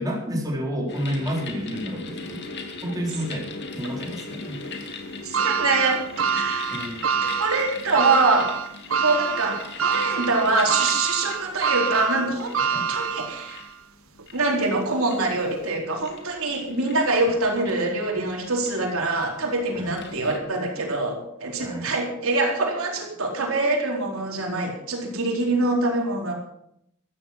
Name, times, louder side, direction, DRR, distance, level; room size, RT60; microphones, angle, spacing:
voice 1, 0.0-2.4 2.8-3.5 3.7-4.7 6.7-7.0 12.7-12.9 19.7-19.9 21.6-21.9, equal, 20° right, -2 dB, 4.1 m, -30 dB
sound 1, 0.9-20.4, left 4 dB, 55° left, 2.5 m, -40 dB
voice 2, 5.2-6.0 6.3-6.8 7.2-8.5 9.0-12.6 12.9-13.6 14.3-26.3, right 2 dB, 90° right, 0 dB, 4.3 m, -24 dB
sound 2, 5.3-13.7 14.2-14.3 15.5-15.6, right 6 dB, 70° right, 0.8 m, -26 dB
14.5 x 14.0 x 6.1 m, 0.74 s
head